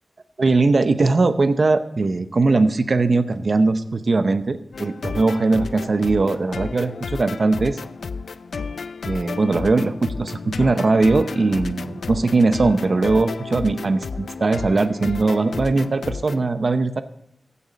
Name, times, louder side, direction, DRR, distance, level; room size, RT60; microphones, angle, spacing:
voice 1, 0.4-7.8 9.0-17.0, right 3 dB, 55° right, 10 dB, 0.8 m, -20 dB
sound 1, 4.7-16.4, left 4 dB, 90° left, 0.5 m, -32 dB
15.5 x 7.0 x 5.2 m, 0.76 s
wide cardioid pair, 75°, 0 cm